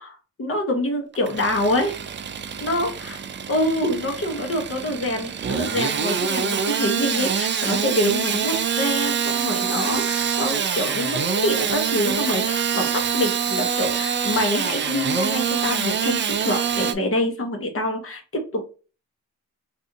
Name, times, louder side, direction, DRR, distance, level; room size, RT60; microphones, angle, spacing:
voice 1, 0.0-1.9 2.6-3.2 3.5-18.7, left 1 dB, 45° left, 4 dB, 1.0 m, -26 dB
Engine starting / Sawing, 1.1-16.9, right 7 dB, 40° right, 0.4 m, -25 dB
3.6 x 2.6 x 2.6 m, 0.35 s
wide cardioid pair, 110°, 31 cm